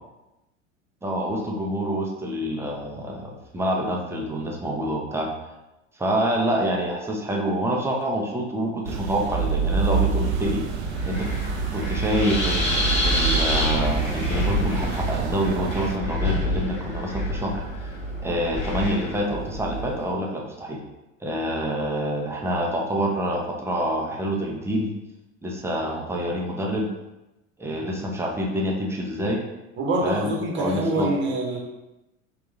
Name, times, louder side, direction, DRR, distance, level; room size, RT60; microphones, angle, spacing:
voice 1, 1.0-5.3 6.0-10.6 11.0-11.2 11.7-12.7 13.0-17.6 18.2-20.8 21.2-24.9 25.4-26.9 27.6-29.4 30.0-31.1, equal, 5° right, -1 dB, 0.6 m, -27 dB
sound 1, 8.8-16.0, right 5 dB, 55° right, 0.6 m, -27 dB
Wind, 10.0-20.1, left 1 dB, 15° left, 1.4 m, -28 dB
voice 2, 29.8-31.6, right 1 dB, 30° right, -1 dB, 1.0 m, -25 dB
3.6 x 2.9 x 3.6 m, 0.97 s
figure-of-eight pair, 75°, 39 cm